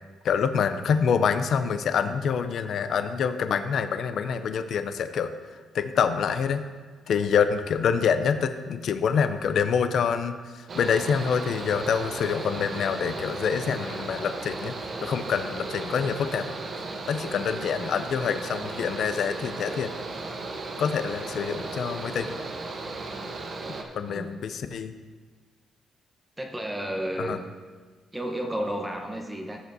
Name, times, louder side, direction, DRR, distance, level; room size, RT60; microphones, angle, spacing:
voice 1, 0.2-5.3 5.7-6.6 7.1-14.7 15.0-16.6 17.1-19.9 20.8-22.4 23.9-24.9 27.2-27.4, left 6 dB, 65° left, 9 dB, 0.5 m, -26 dB
Mechanical fan, 10.7-23.8, right 3 dB, 50° right, 1.1 m, -35 dB
voice 2, 26.4-27.4 28.1-29.6, right 1 dB, 10° right, 2 dB, 0.9 m, -32 dB
15.0 x 6.7 x 2.7 m, 1.5 s
cardioid pair, 90°, 0 cm